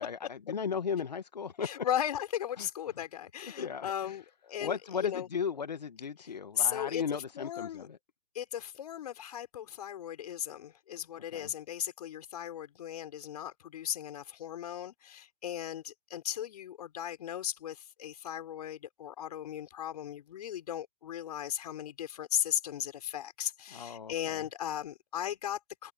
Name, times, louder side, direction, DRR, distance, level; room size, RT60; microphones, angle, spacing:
voice 1, 0.0-1.7 2.6-2.7 3.4-4.2 4.6-8.0 11.3-11.5 23.7-24.4, left 6 dB, 85° left, 1.4 m, -36 dB
voice 2, 1.6-5.3 6.6-7.9 8.3-25.9, left 10 dB, 65° left, 4.9 m, -36 dB
hypercardioid pair, 110°, 21 cm